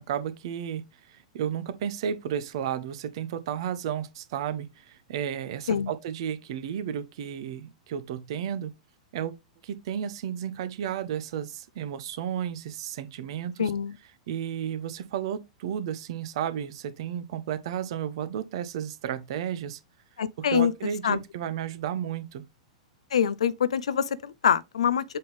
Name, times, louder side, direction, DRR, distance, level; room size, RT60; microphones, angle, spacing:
voice 1, 0.0-8.7 9.1-9.4 9.6-13.7 14.3-19.8 20.4-22.4, right 9 dB, 50° right, 0.9 m, -33 dB
voice 2, 13.6-14.0 20.2-20.7 21.0-21.2 23.1-25.0, left 8 dB, 65° left, 0.5 m, -25 dB
7.8 x 3.8 x 3.4 m
figure-of-eight pair, 100°, 4 cm